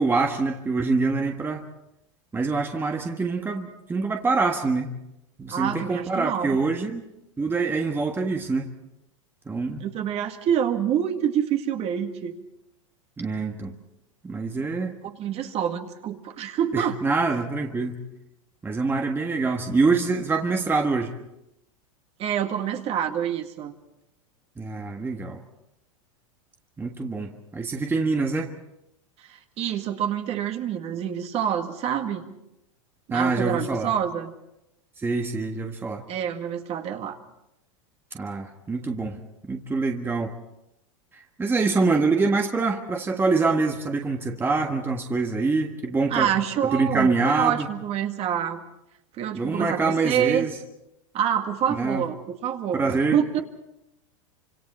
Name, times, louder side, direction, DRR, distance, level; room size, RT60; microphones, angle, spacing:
voice 1, 0.0-1.6 2.3-5.0 5.4-7.0 7.4-8.7 9.5-9.8 13.2-13.7 14.2-14.9 16.7-18.0 18.6-21.1 24.6-25.4 26.8-28.5 33.1-33.9 35.0-36.0 38.1-39.2 39.5-40.3 41.1-46.3 46.7-47.7 49.3-50.6 51.8-52.0 52.7-53.4, right 3 dB, 15° right, 3 dB, 1.5 m, -25 dB
voice 2, 5.5-6.6 9.8-12.4 15.0-17.0 22.2-23.7 29.3-32.3 33.1-34.3 36.1-37.2 46.1-48.6 49.2-50.5 51.1-52.2 52.4-53.4, right 9 dB, 40° right, 6 dB, 2.0 m, -27 dB
26.5 x 26.0 x 4.4 m, 0.86 s
hypercardioid pair, 115°, 17 cm